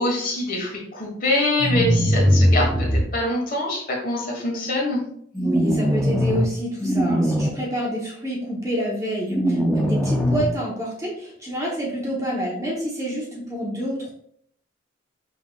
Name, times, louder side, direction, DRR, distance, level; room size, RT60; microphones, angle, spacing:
voice 1, 0.0-5.0, left 1 dB, 45° left, -1 dB, 1.3 m, -24 dB
sound 1, 1.6-3.0 5.3-6.5 6.8-7.5 9.3-10.5, equal, ahead, 0.4 m, -20 dB
voice 2, 5.4-14.1, equal, 15° right, -3 dB, 0.8 m, -28 dB
5.3 x 3.5 x 2.3 m, 0.68 s
head